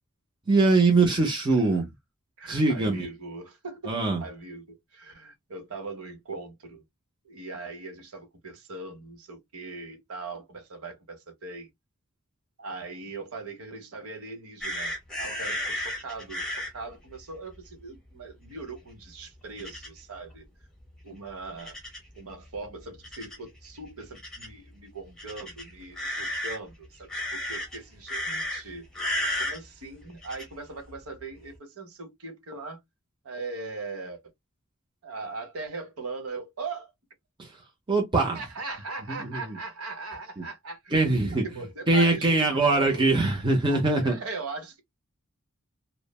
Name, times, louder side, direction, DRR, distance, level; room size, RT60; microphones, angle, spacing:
voice 1, 0.5-1.9 2.5-3.1 3.9-4.2 37.4-37.5 37.9-38.4 39.1-39.6 40.4-40.5 40.9-41.4 41.9-44.2, right 3 dB, 20° right, 0.5 m, -22 dB
voice 2, 2.4-6.8 7.2-11.7 12.6-20.5 21.0-21.7 22.1-28.9 29.4-32.8 33.2-34.2 35.0-36.9 38.3-43.0 43.7-44.8, right 3 dB, 75° right, 0.9 m, -40 dB
sound 1, 14.6-16.7 19.6-19.9 21.6-22.1 23.0-23.4 24.1-24.5 25.2-26.6 27.1-27.8 28.1-28.6 28.9-29.6 30.2-30.4, left 1 dB, 5° left, 1.0 m, -32 dB
3.1 x 2.0 x 2.2 m
head